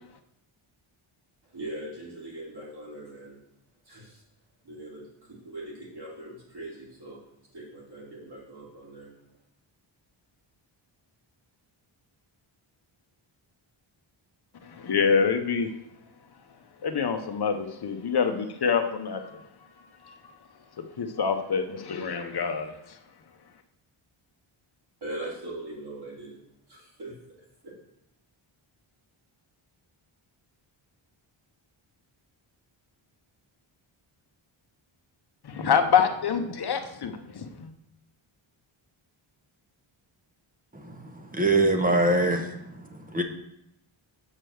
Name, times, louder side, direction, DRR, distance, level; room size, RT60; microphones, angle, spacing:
voice 1, 1.4-3.4 3.8-4.2 4.6-7.2 7.5-9.1 25.0-26.4 26.7-27.2 27.6-27.7, right 1 dB, 50° right, -5 dB, 2.9 m, -41 dB
voice 2, 14.7-15.7 16.8-19.4 20.0-20.1 20.8-22.7 35.4-37.7, left 6 dB, 50° left, 6 dB, 0.9 m, -26 dB
voice 3, 40.7-43.2, right 2 dB, 15° right, 4 dB, 0.9 m, -25 dB
7.4 x 4.5 x 6.4 m, 0.81 s
wide cardioid pair, 160°, 50 cm